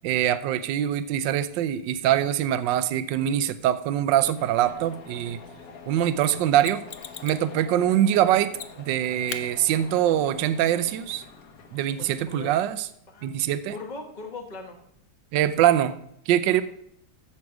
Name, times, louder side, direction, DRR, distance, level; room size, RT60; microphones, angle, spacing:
voice 1, 0.0-5.4 5.9-6.8 7.2-8.5 8.9-11.2 11.7-12.9 13.2-13.7 15.3-16.0 16.3-16.6, right 11 dB, 70° right, 13 dB, 1.2 m, -23 dB
sound 1, 4.4-13.0, left 5 dB, 55° left, 1.3 m, -46 dB
Mechanisms, 6.2-7.5 8.5-8.9 9.3-9.4 12.2-12.3, left 8 dB, 90° left, 0.6 m, -38 dB
voice 2, 12.0-12.6 13.1-13.3 13.7-14.8 16.5-16.6, left 3 dB, 25° left, 2 dB, 1.1 m, -39 dB
14.5 x 6.5 x 4.8 m, 0.75 s
omnidirectional pair, 2.2 m